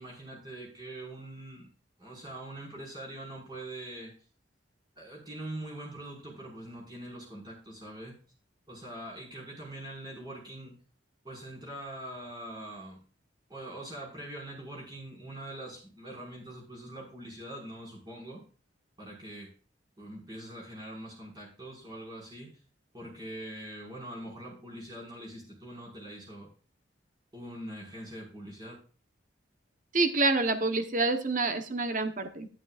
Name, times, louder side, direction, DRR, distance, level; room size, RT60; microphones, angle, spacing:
voice 1, 0.0-1.7 2.0-4.1 5.0-8.2 8.7-10.8 11.2-13.0 13.5-18.4 19.0-19.5 20.0-22.6 22.9-26.5 27.3-28.8, right 1 dB, 20° right, -3 dB, 5.8 m, -43 dB
voice 2, 29.9-32.5, right 3 dB, 40° right, 7 dB, 1.2 m, -27 dB
12.5 x 11.0 x 2.6 m, 0.39 s
head